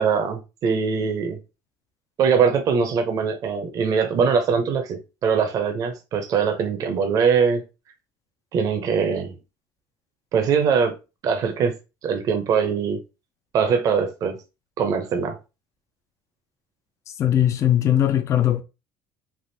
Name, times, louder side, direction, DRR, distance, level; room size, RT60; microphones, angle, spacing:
voice 1, 0.0-1.4 2.2-7.6 8.5-9.3 10.3-11.0 11.2-11.7 12.0-13.0 13.5-14.4 14.8-15.4, right 6 dB, 45° right, 0.6 m, -22 dB
voice 2, 17.2-18.6, left 11 dB, 35° left, 0.4 m, -19 dB
3.4 x 2.4 x 2.6 m
cardioid pair, 120°, 8 cm